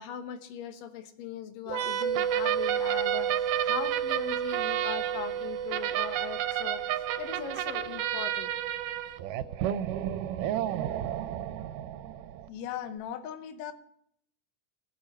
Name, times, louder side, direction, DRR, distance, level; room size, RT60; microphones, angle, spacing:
voice 1, 0.0-8.5, left 8 dB, 85° left, 8 dB, 2.8 m, -40 dB
sound 1, 1.7-9.2, right 8 dB, 65° right, 1.7 m, -33 dB
sound 2, 2.1-12.5, right 12 dB, 80° right, 2.2 m, -32 dB
voice 2, 12.5-13.7, left 9 dB, 70° left, 9 dB, 1.9 m, -37 dB
19.5 x 7.0 x 5.4 m, 0.71 s
omnidirectional pair, 3.8 m